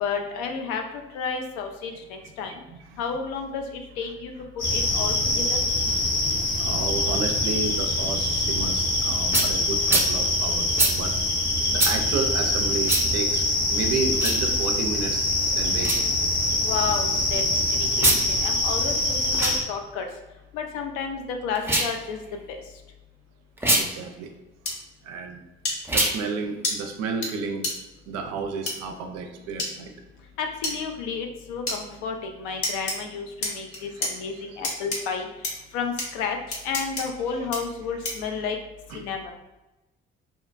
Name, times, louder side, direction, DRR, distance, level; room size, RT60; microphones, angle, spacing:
voice 1, 0.0-0.8 1.1-2.5 3.0-3.6 4.0-4.3 4.7-5.6 16.6-17.4 17.8-20.0 20.5-22.2 22.5-22.6 30.4-35.3 35.7-36.4 36.6-38.6 38.9-39.3, left 5 dB, 70° left, 4 dB, 0.5 m, -31 dB
voice 2, 2.7-3.0 5.9-11.1 11.7-16.1 23.8-24.3 25.0-25.4 25.9-27.7 28.1-29.9 33.5-34.2 38.9-39.0, right 4 dB, 60° right, 5 dB, 0.5 m, -32 dB
sound 1, 4.6-19.6, left 1 dB, 85° left, 1.4 m, -24 dB
sound 2, 9.3-9.5 9.9-10.1 10.8-10.9 11.8-11.9 12.9-13.0 14.1-14.4 15.8-16.0 17.9-18.2 19.3-19.6 21.6-21.9 23.6-23.8 25.8-26.2, right 1 dB, 10° right, 0.5 m, -22 dB
sound 3, 24.7-24.8 25.6-25.8 26.6-26.7 27.2-27.3 27.6-27.7 28.7-28.8 29.6-29.7 30.6-30.8 31.7-31.8 32.6-33.0 33.4-34.1 34.6-35.0 35.4-35.5 36.0-36.1 36.5-37.0 37.5-37.6 38.0-38.3, left 2 dB, 50° left, 0.8 m, -27 dB
2.8 x 2.1 x 2.4 m, 1.0 s
hypercardioid pair, 50°, 29 cm